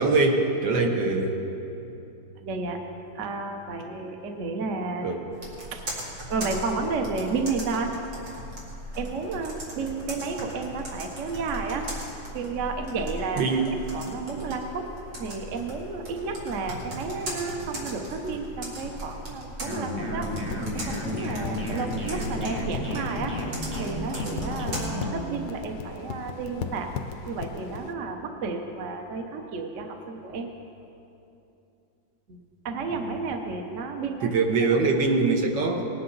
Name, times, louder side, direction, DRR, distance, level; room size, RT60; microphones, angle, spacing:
voice 1, 0.0-1.4 5.0-5.2 13.4-13.6 34.2-35.8, right 3 dB, 70° right, 3 dB, 1.6 m, -23 dB
voice 2, 2.4-2.8 3.1-5.1 5.7-5.8 6.3-7.9 8.9-11.8 12.3-14.9 15.2-20.3 20.7-23.3 23.8-26.9 27.3-30.5 32.3-32.4 32.6-34.3 34.7-34.8, right 4 dB, 50° right, 4 dB, 1.1 m, -32 dB
Computer keyboard, 5.3-24.9, right 1 dB, 90° right, 3.0 m, -38 dB
sound 1, 19.6-25.3, equal, 30° right, 1.0 m, -32 dB
sound 2, 20.2-27.9, left 6 dB, 70° left, 1.3 m, -38 dB
19.0 x 9.6 x 4.0 m, 2.8 s
omnidirectional pair, 2.1 m